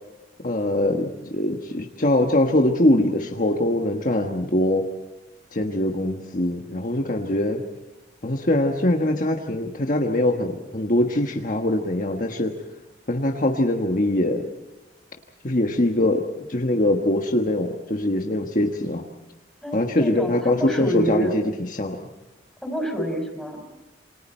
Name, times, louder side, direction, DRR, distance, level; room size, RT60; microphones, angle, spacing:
voice 1, 0.4-4.9 5.5-7.6 8.2-12.5 13.1-14.4 15.4-19.1 19.7-22.0, left 1 dB, 45° left, 2 dB, 1.4 m, -22 dB
voice 2, 19.6-21.3 22.6-23.6, equal, ahead, 1 dB, 6.2 m, -27 dB
28.0 x 26.5 x 4.5 m, 1.1 s
head